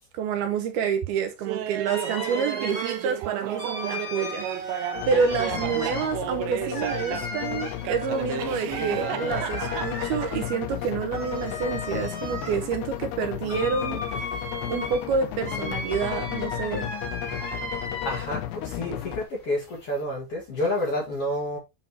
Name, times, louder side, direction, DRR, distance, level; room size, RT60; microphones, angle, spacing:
voice 1, 0.1-14.3 14.7-16.9, right 6 dB, 75° right, 2.8 m, -28 dB
Laughter, 1.5-7.4 7.8-10.4, right 12 dB, 90° right, 3.1 m, -33 dB
sound 1, 1.9-18.5 18.9-20.0, left 1 dB, 15° left, 1.9 m, -37 dB
sound 2, 4.9-19.2, left 12 dB, 80° left, 2.7 m, -34 dB
voice 2, 18.0-21.6, left 1 dB, 45° left, 2.3 m, -29 dB
9.4 x 4.3 x 3.0 m
omnidirectional pair, 4.9 m